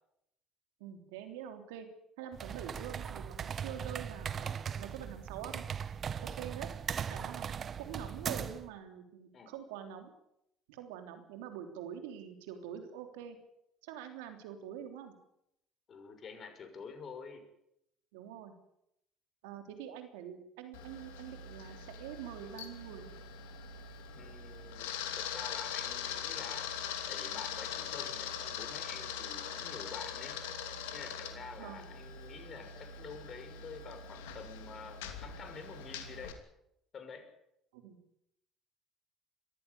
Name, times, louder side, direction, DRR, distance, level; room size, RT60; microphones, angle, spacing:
voice 1, 0.8-1.9 2.2-5.7 6.2-6.7 7.1-7.5 7.8-10.1 10.7-13.4 13.8-15.2 18.1-18.5 19.4-23.1 31.6-31.9 37.7-38.0, right 9 dB, 85° right, 7 dB, 3.3 m, -45 dB
sound 1, 2.3-8.7, right 7 dB, 50° right, 1.7 m, -39 dB
voice 2, 15.9-17.4 24.0-26.7 27.1-30.4 30.9-36.4 36.9-37.3, left 5 dB, 45° left, 7 dB, 6.3 m, -48 dB
Camera, 20.7-36.3, left 7 dB, 85° left, 2.8 m, -42 dB
22.0 x 15.0 x 9.9 m, 0.79 s
hypercardioid pair, 70°, 0 cm